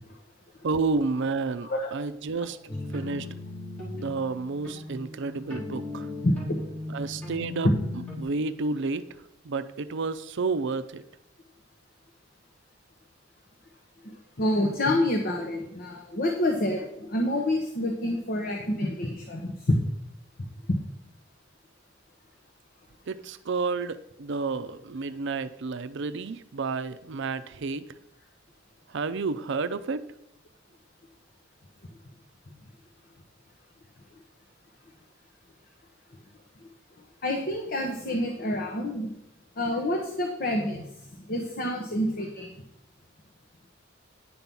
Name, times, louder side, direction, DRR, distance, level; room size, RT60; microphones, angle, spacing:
voice 1, 0.6-2.6 2.9-3.3 3.9-6.1 6.9-7.7 8.2-9.0 9.4-11.0 23.1-27.9 28.9-30.0, right 4 dB, 65° right, 11 dB, 0.5 m, -30 dB
sound 1, 2.7-8.2, left 2 dB, 10° left, 4.0 m, -37 dB
voice 2, 6.2-6.6 14.4-19.8 20.7-20.8 37.2-39.1 39.6-40.9 41.3-42.5, left 1 dB, 50° left, 2 dB, 1.1 m, -27 dB
9.7 x 6.0 x 5.4 m, 0.78 s
head